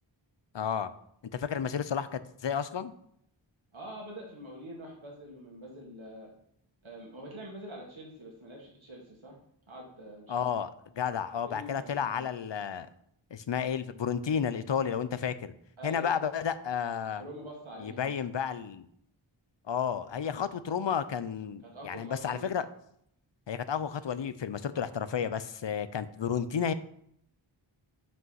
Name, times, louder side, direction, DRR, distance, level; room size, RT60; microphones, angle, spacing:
voice 1, 0.5-0.9 1.3-2.9 10.3-12.9 13.3-15.5 15.8-17.2 17.8-18.9 19.7-22.7 23.5-26.7, left 7 dB, 65° left, 14 dB, 0.6 m, -32 dB
voice 2, 3.7-6.3 6.8-9.4 9.7-10.5 11.4-12.3 15.8-16.1 17.2-18.2 21.6-22.5, equal, 75° right, -2 dB, 1.8 m, -45 dB
5.5 x 5.3 x 5.6 m, 0.71 s
wide cardioid pair, 45°, 48 cm